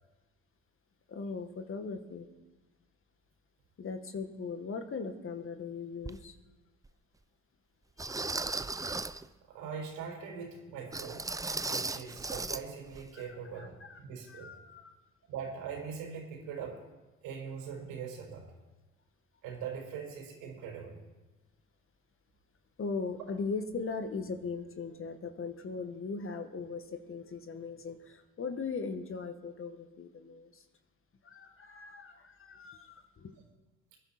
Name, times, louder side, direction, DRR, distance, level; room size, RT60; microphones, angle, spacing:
voice 1, 1.1-2.3 3.8-6.4 8.0-8.5 13.1-13.2 13.6-14.0 14.3-15.0 22.8-30.6 31.2-33.4, left 4 dB, 40° left, 7 dB, 1.8 m, -39 dB
sound 1, 6.0-6.2 6.9-7.0 8.0-9.3 10.9-12.6 12.9-13.1 13.5-13.6, right 3 dB, 10° right, 0.6 m, -36 dB
voice 2, 9.5-11.2 11.7-14.5 15.3-16.8 17.2-18.5 19.4-21.0, right 6 dB, 75° right, 0 dB, 5.1 m, -41 dB
22.5 x 10.5 x 4.4 m, 1.2 s
supercardioid pair, 70°, 33 cm